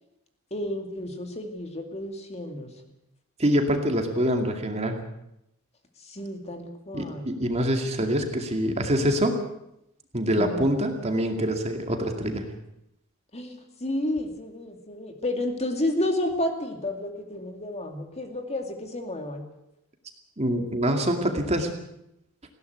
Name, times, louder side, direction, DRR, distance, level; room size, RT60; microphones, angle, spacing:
voice 1, 0.5-2.7 6.0-7.3 10.4-10.8 13.3-19.4, left 1 dB, 30° left, 5 dB, 2.4 m, -31 dB
voice 2, 3.4-5.0 6.9-9.4 10.1-12.5 20.4-21.7, equal, 30° right, 4 dB, 2.4 m, -25 dB
19.5 x 16.0 x 8.2 m, 0.84 s
head